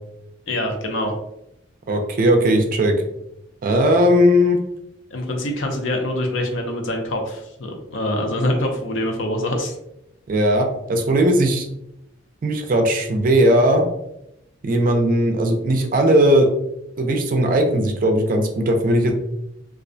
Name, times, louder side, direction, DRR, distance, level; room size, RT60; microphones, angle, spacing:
voice 1, 0.5-1.1 5.1-9.8, left 1 dB, 70° left, 2 dB, 0.5 m, -24 dB
voice 2, 1.9-3.0 3.6-4.6 10.3-11.7 12.4-13.9 14.6-16.5 17.0-19.1, equal, 45° right, 4 dB, 0.4 m, -17 dB
2.4 x 2.1 x 2.5 m, 0.81 s
head